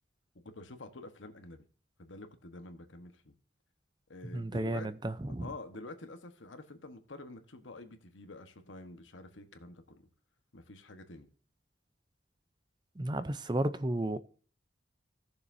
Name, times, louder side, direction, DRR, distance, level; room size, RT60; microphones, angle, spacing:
voice 1, 0.3-1.7 2.0-3.3 4.1-4.9 5.4-10.1 10.5-11.3, left 2 dB, 85° left, 1.3 m, -48 dB
voice 2, 4.3-5.5 13.0-14.2, right 1 dB, 25° right, 0.5 m, -33 dB
18.0 x 6.8 x 2.7 m
head